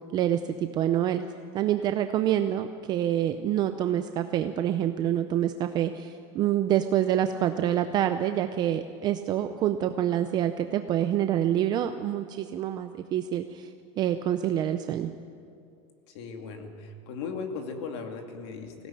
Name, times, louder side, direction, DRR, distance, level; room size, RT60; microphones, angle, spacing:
voice 1, 0.7-1.3 1.5-13.7 14.0-15.1, right 11 dB, 25° right, 8 dB, 0.5 m, -26 dB
voice 2, 16.1-18.9, left 5 dB, 60° left, 4 dB, 2.5 m, -37 dB
20.0 x 16.5 x 9.0 m, 2.4 s
supercardioid pair, 170°, 16 cm